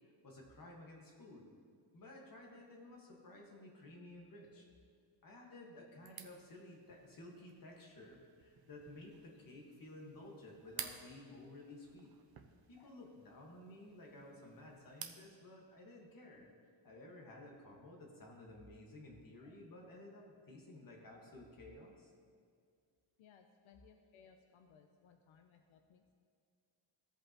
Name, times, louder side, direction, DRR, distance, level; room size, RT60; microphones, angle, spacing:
voice 1, 0.2-1.5 1.9-4.7 5.2-12.2 12.7-16.5 16.8-22.1, left 1 dB, 45° left, -1 dB, 1.5 m, -54 dB
sound 1, 6.0-15.3, right 8 dB, 50° right, 0.6 m, -54 dB
voice 2, 23.2-26.1, left 6 dB, 85° left, 5 dB, 0.7 m, -64 dB
16.0 x 5.4 x 2.9 m, 2.2 s
wide cardioid pair, 175°, 47 cm